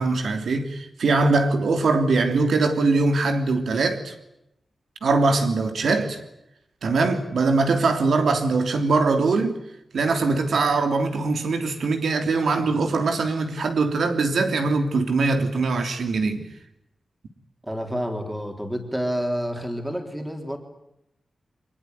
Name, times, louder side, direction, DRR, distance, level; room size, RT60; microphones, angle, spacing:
voice 1, 0.0-4.1 5.0-6.2 6.8-9.6 9.9-16.5, right 3 dB, 80° right, 3.1 m, -22 dB
voice 2, 17.6-20.6, equal, 10° right, 3.6 m, -29 dB
24.5 x 21.0 x 9.5 m
wide cardioid pair, 180°, 0 cm